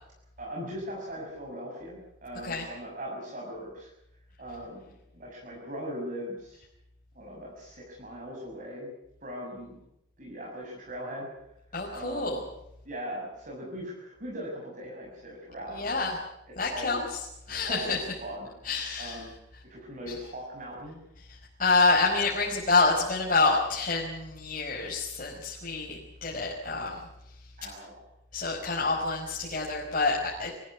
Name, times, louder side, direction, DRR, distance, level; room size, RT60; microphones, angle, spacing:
voice 1, 0.4-3.9 4.4-6.6 7.1-8.9 9.2-9.8 10.2-11.3 11.9-12.4 12.8-16.2 16.7-17.0 17.7-18.5 19.0-19.3 19.6-21.0 27.6-28.0, equal, 45° right, -2 dB, 6.7 m, -39 dB
voice 2, 11.7-12.4 15.7-16.1 16.6-17.2 17.5-18.0 18.6-19.2 21.3-27.0 28.3-30.5, left 3 dB, 45° left, -5 dB, 5.3 m, -27 dB
24.5 x 14.5 x 9.8 m, 0.83 s
head